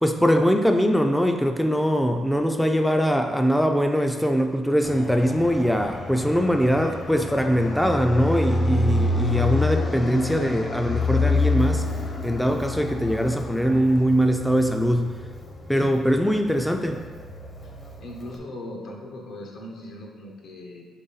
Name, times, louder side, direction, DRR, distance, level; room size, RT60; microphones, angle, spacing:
voice 1, 0.0-11.9 12.2-15.1 15.7-17.0, equal, 5° left, 4 dB, 0.3 m, -22 dB
Fixed-wing aircraft airplane, 4.8-18.4, left 2 dB, 35° left, 0.7 m, -28 dB
voice 2, 15.7-16.2 17.6-17.7 18.0-20.9, left 1 dB, 75° left, 0 dB, 0.8 m, -39 dB
4.0 x 3.3 x 3.9 m, 1.5 s
cardioid pair, 90°, 0 cm